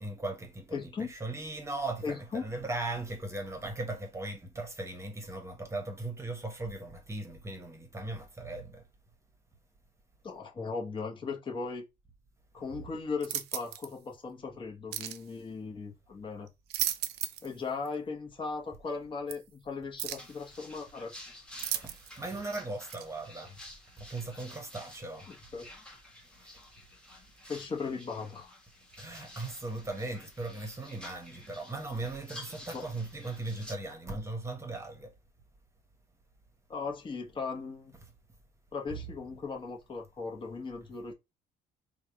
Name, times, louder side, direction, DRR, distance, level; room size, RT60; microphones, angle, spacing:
voice 1, 0.0-8.8 12.7-12.8 21.7-23.6 24.0-25.3 26.4-26.5 29.0-35.1, right 2 dB, 15° right, 1.1 m, -38 dB
voice 2, 0.7-1.1 2.0-2.4 10.2-11.8 12.5-16.5 17.4-21.1 25.3-25.7 27.5-28.5 32.7-32.8 36.7-37.9 38.7-41.1, left 4 dB, 30° left, 1.1 m, -38 dB
sound 1, 13.2-13.9 14.9-15.2 16.5-17.5 17.9-18.0 19.3-19.4 20.0-20.3 21.6-22.3 22.9-23.1, right 12 dB, 75° right, 0.6 m, -35 dB
sound 2, 20.2-33.8, left 1 dB, 5° left, 1.3 m, -51 dB
3.5 x 2.4 x 4.5 m
cardioid pair, 110°, 17 cm